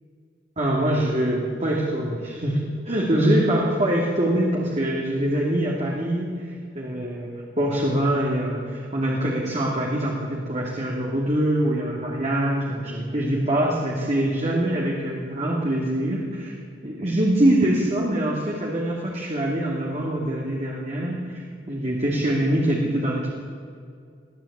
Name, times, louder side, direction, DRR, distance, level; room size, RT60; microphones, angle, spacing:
voice 1, 0.6-16.6 16.8-23.3, right 1 dB, 40° right, -2 dB, 3.0 m, -24 dB
22.5 x 15.5 x 8.9 m, 2.3 s
head